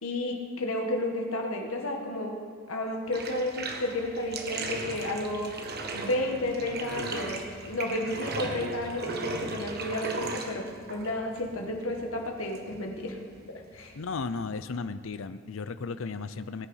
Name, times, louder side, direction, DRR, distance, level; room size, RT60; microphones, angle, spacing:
voice 1, 0.0-2.4 2.7-13.2 13.7-13.9, left 1 dB, 90° left, 1 dB, 1.7 m, -32 dB
Bathtub (filling or washing), 3.1-14.7, right 3 dB, 50° right, 1.4 m, -38 dB
voice 2, 14.0-16.7, left 4 dB, 70° left, 12 dB, 0.6 m, -35 dB
19.0 x 10.0 x 5.6 m, 2.1 s
head